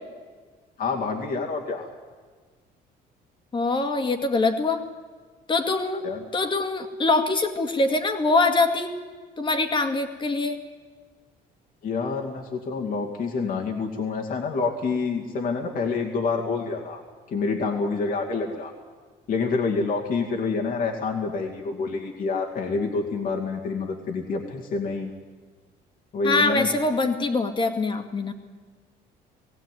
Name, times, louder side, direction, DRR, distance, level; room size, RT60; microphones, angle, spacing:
voice 1, 0.8-1.9 6.0-6.2 11.8-17.0 17.3-18.7 19.3-25.1 26.1-26.7, left 4 dB, 55° left, 1 dB, 2.4 m, -27 dB
voice 2, 3.5-4.8 5.5-8.9 9.4-10.6 26.2-28.3, left 3 dB, 30° left, 6 dB, 2.1 m, -24 dB
20.0 x 16.0 x 9.4 m, 1.5 s
cardioid pair, 110°, 17 cm